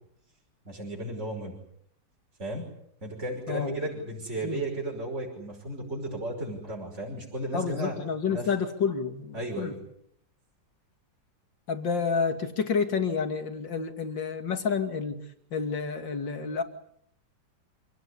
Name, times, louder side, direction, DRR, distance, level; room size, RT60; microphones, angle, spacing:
voice 1, 0.7-1.6 2.4-2.7 3.0-8.0 8.3-8.5 9.3-9.8, right 1 dB, 35° right, -1 dB, 6.0 m, -34 dB
voice 2, 3.5-3.8 4.4-4.6 7.5-9.7 11.7-15.2 15.5-16.6, left 5 dB, 70° left, 7 dB, 3.2 m, -29 dB
27.5 x 18.0 x 9.9 m, 0.70 s
omnidirectional pair, 2.1 m